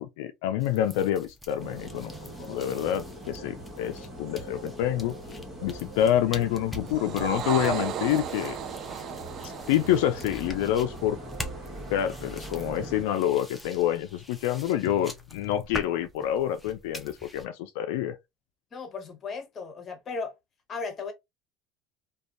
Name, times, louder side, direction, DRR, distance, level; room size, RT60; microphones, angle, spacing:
voice 1, 0.0-2.1 2.4-5.1 5.6-8.6 9.7-11.2 11.9-18.2, left 11 dB, 85° left, 0.3 m, -27 dB
sound 1, 0.6-17.5, left 1 dB, 5° left, 0.6 m, -45 dB
sound 2, 1.6-13.0, right 1 dB, 30° right, 1.3 m, -41 dB
sound 3, 6.8-11.4, right 10 dB, 55° right, 0.3 m, -35 dB
voice 2, 18.7-20.3 20.7-21.1, left 4 dB, 30° left, 1.0 m, -36 dB
2.6 x 2.2 x 2.4 m
supercardioid pair, 110°, 0 cm